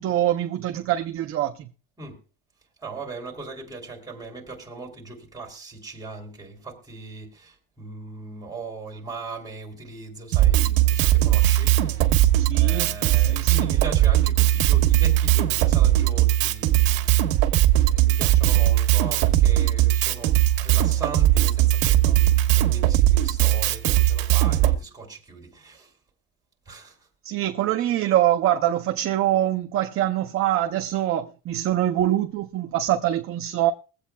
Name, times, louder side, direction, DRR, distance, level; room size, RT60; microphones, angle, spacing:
voice 1, 0.0-1.7 12.4-13.9 27.2-33.7, right 12 dB, 30° right, 0.5 m, -24 dB
voice 2, 2.8-12.2 12.5-17.1 17.7-20.3 20.6-25.9 26.6-27.0, right 3 dB, 10° right, 3.0 m, -39 dB
Drum kit, 10.3-24.7, right 14 dB, 75° right, 1.4 m, -19 dB
22.0 x 8.2 x 2.2 m
cardioid pair, 165°, 44 cm